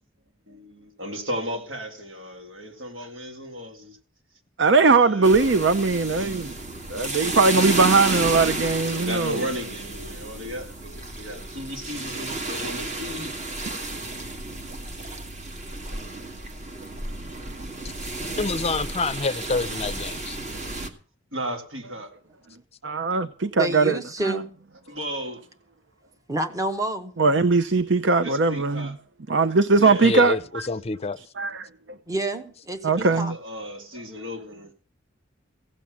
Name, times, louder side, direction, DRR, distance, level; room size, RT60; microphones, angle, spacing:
voice 1, 0.5-4.0 4.9-5.4 6.1-6.6 8.8-13.9 21.3-22.1 24.9-25.4 28.2-28.9 29.8-30.3 33.0-34.7, equal, 85° right, 3.7 m, -35 dB
voice 2, 4.6-6.5 6.9-9.4 22.8-24.0 24.2-24.4 27.2-28.9 29.3-30.4 31.4-31.7 32.8-33.3, right 4 dB, 65° right, 0.7 m, -20 dB
sound 1, 5.2-20.9, right 2 dB, 35° right, 1.9 m, -32 dB
voice 3, 18.4-20.4 30.0-31.2, left 3 dB, 30° left, 0.5 m, -27 dB
voice 4, 23.6-24.5 26.3-27.1 32.1-33.3, right 1 dB, 20° right, 1.1 m, -29 dB
16.5 x 7.5 x 7.1 m
head